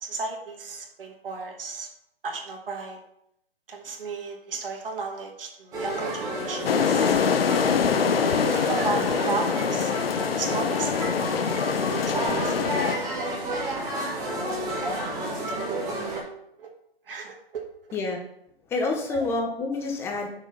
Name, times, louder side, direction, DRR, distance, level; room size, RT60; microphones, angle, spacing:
voice 1, 0.0-1.9 2.2-3.0 3.7-7.5 8.5-13.0 15.5-15.6 16.6-16.7 17.1-17.6, right 4 dB, 60° right, 1 dB, 2.0 m, -35 dB
sound 1, 5.7-16.2, right 1 dB, 10° right, 1.5 m, -30 dB
sound 2, 6.6-13.0, left 7 dB, 70° left, 0.7 m, -24 dB
voice 2, 18.7-20.3, left 3 dB, 10° left, 2 dB, 0.7 m, -27 dB
6.5 x 6.3 x 5.4 m, 0.75 s
hypercardioid pair, 150°, 31 cm